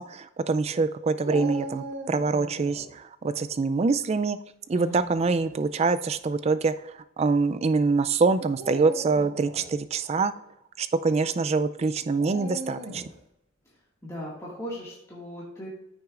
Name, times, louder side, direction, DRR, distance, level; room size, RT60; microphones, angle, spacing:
voice 1, 0.0-4.4 4.7-6.7 7.2-10.3 10.8-13.0, right 4 dB, 30° right, 12 dB, 0.3 m, -25 dB
Dog, 1.2-2.9 5.0-5.4 6.2-6.3 8.5-9.7 12.2-13.2, right 1 dB, 70° right, 1.7 m, -38 dB
voice 2, 4.7-5.1 14.0-15.7, equal, 15° left, -7 dB, 1.9 m, -38 dB
13.5 x 6.2 x 2.4 m, 0.83 s
head